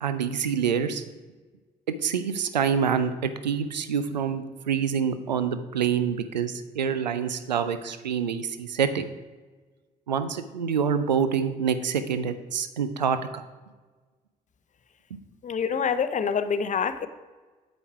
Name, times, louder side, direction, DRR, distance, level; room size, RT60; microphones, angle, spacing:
voice 1, 0.0-1.0 2.0-9.0 10.1-13.4, right 7 dB, 85° right, 11 dB, 0.5 m, -26 dB
voice 2, 15.4-17.1, left 6 dB, 35° left, 11 dB, 0.7 m, -26 dB
8.5 x 6.2 x 4.7 m, 1.3 s
figure-of-eight pair, 45°, 21 cm